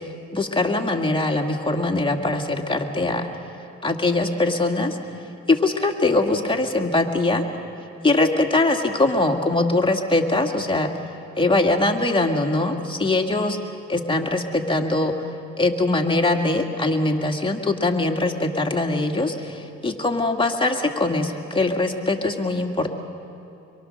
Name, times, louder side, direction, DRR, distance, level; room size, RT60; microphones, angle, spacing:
voice 1, 0.3-3.3 3.8-5.0 5.5-7.4 8.0-10.9 11.4-13.6 13.9-15.2 15.6-22.9, left 2 dB, 15° left, 2 dB, 2.0 m, -22 dB
24.5 x 23.0 x 6.5 m, 2.9 s
cardioid pair, 90°, 30 cm